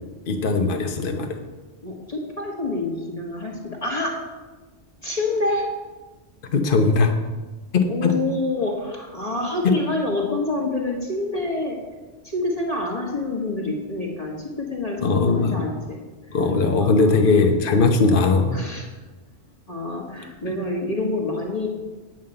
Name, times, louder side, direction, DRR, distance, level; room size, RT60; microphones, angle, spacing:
voice 1, 0.3-1.4 6.5-7.1 7.7-8.1 15.0-15.6 16.3-18.6 20.5-20.6, left 3 dB, 50° left, 4 dB, 1.2 m, -19 dB
voice 2, 1.8-4.2 5.0-5.7 7.9-11.8 12.2-16.0 16.8-17.3 18.5-18.9 19.7-21.7, left 2 dB, 30° left, -3 dB, 1.7 m, -27 dB
9.2 x 5.6 x 7.8 m, 1.2 s
omnidirectional pair, 1.2 m